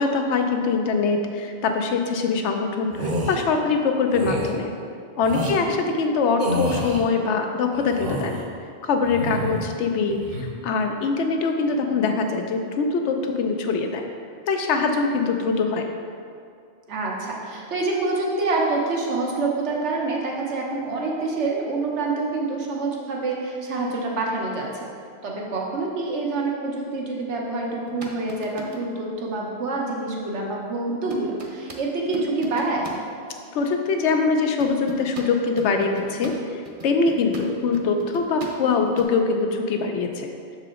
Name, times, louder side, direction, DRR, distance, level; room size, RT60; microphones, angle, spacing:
voice 1, 0.0-4.7 5.2-8.4 8.8-10.2 10.6-14.1 14.5-15.9 33.5-40.3, left 4 dB, 85° left, 4 dB, 0.9 m, -23 dB
sound 1, 2.9-3.4 4.1-4.5 5.2-5.6 6.4-7.0 7.7-8.4 9.0-9.7 10.1-10.5, equal, 55° right, 0.9 m, -28 dB
voice 2, 16.9-24.9 25.2-32.9, right 3 dB, 90° right, -1 dB, 1.2 m, -27 dB
sound 2, 27.9-29.0 31.1-31.8 32.1-33.0 34.6-38.6 38.9-39.0, equal, 35° right, 0.6 m, -37 dB
6.7 x 4.9 x 3.7 m, 2.3 s
omnidirectional pair, 1.1 m